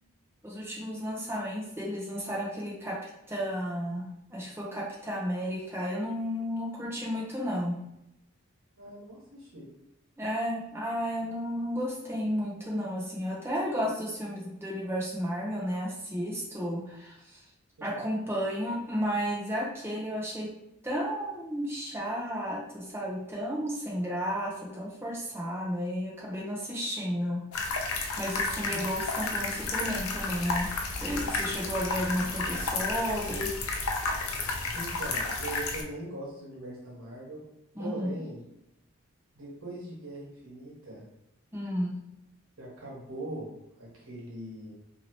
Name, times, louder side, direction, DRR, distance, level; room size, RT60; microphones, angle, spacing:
voice 1, 0.4-7.8 10.2-17.4 17.8-20.5 20.8-27.4 28.2-30.7 31.0-33.5 37.7-38.1 41.5-42.0, equal, 10° right, -3 dB, 0.6 m, -33 dB
voice 2, 8.8-9.7 17.8-18.0 28.7-28.9 34.7-37.4 37.8-38.4 39.3-41.0 42.6-43.5 43.8-44.7, right 1 dB, 85° right, -5 dB, 1.1 m, -41 dB
sound 1, 27.5-35.8, left 3 dB, 85° left, 0.5 m, -32 dB
2.8 x 2.7 x 3.0 m, 0.84 s
head